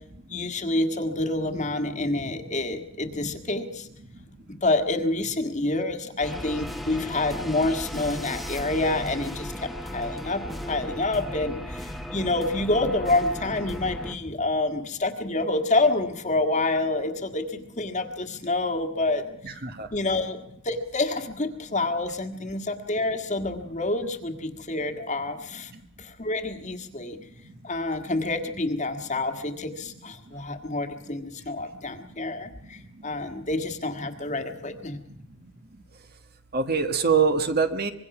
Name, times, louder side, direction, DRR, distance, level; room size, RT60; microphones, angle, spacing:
voice 1, 0.3-3.9 4.6-19.2 19.9-20.4 20.6-25.7 26.0-27.2 27.6-35.0, left 2 dB, 35° left, 7 dB, 1.7 m, -28 dB
sound 1, 6.2-14.1, equal, ahead, 1.2 m, -36 dB
voice 2, 19.4-19.9 36.5-37.9, right 5 dB, 45° right, 8 dB, 1.4 m, -23 dB
25.0 x 21.5 x 6.0 m, 0.75 s
head